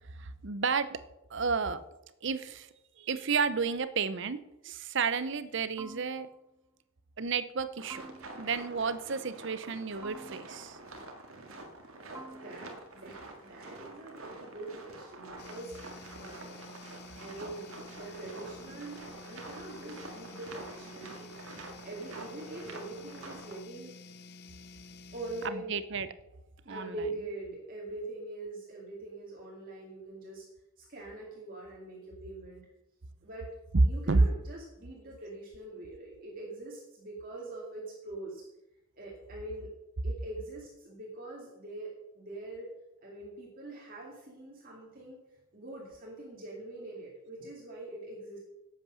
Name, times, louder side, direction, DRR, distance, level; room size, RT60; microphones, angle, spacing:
voice 1, 0.0-1.0 1.3-1.8 2.2-2.7 3.0-4.4 4.6-6.3 7.2-8.0 8.4-10.8 25.4-26.1 26.7-26.9 34.1-34.2, right 5 dB, 55° right, 14 dB, 0.7 m, -31 dB
sound 1, 5.8-6.6 7.9-8.7 10.0-10.8 12.2-13.0, right 2 dB, 10° right, 0.5 m, -50 dB
sound 2, 7.8-23.6, right 2 dB, 75° right, 1.8 m, -47 dB
voice 2, 12.3-16.7 17.2-21.4 21.8-24.0 25.1-25.8 26.6-30.5 30.8-32.6 33.2-33.5 33.8-38.5 39.0-39.7 40.0-42.7 43.0-45.2 45.5-48.4, right 2 dB, 40° right, -3 dB, 2.3 m, -43 dB
sound 3, 15.4-25.5, left 3 dB, 50° left, 0.7 m, -51 dB
11.5 x 8.4 x 6.4 m, 0.93 s
head